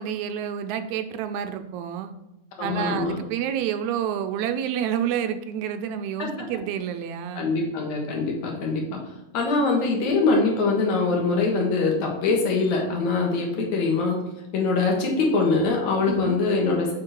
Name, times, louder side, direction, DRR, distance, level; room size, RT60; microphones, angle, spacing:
voice 1, 0.0-2.1 2.6-7.5 16.1-16.4, right 9 dB, 80° right, 9 dB, 1.9 m, -29 dB
voice 2, 2.6-3.2 6.2-6.3 7.3-9.0 9.3-14.2 14.5-17.0, left 3 dB, 70° left, 0 dB, 2.8 m, -23 dB
7.4 x 6.0 x 4.6 m, 0.93 s
omnidirectional pair, 3.4 m